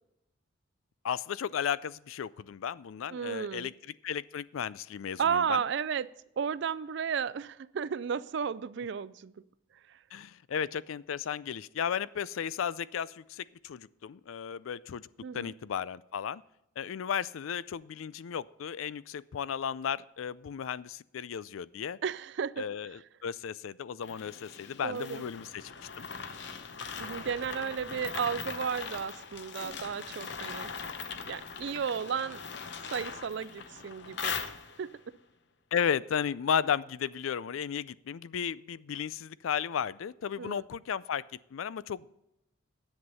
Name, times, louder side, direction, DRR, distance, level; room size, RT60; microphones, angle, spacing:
voice 1, 1.0-3.7 4.0-5.6 10.1-15.1 15.3-16.4 16.8-22.0 22.6-25.6 26.0-26.1 35.7-41.3 41.5-42.1, left 8 dB, 85° left, 20 dB, 0.4 m, -34 dB
voice 2, 3.1-3.7 5.2-6.1 6.4-9.3 9.9-10.0 15.2-15.5 22.0-22.7 24.8-25.2 27.0-30.7 31.2-32.4 32.8-34.4 34.8-34.9 40.4-40.6, right 7 dB, 60° right, 18 dB, 0.4 m, -33 dB
sound 1, 24.0-35.0, left 6 dB, 60° left, 0.8 m, -40 dB
10.5 x 8.0 x 5.5 m, 0.85 s
head